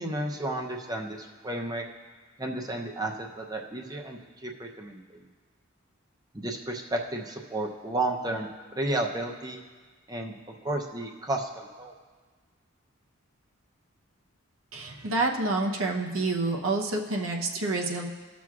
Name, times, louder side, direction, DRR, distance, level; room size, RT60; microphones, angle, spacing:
voice 1, 0.0-1.8 2.4-5.2 6.3-9.6 10.1-11.9, right 2 dB, 15° right, 1 dB, 0.7 m, -32 dB
voice 2, 14.7-18.1, right 2 dB, 70° right, 1 dB, 0.8 m, -28 dB
18.0 x 6.1 x 2.4 m, 1.5 s
head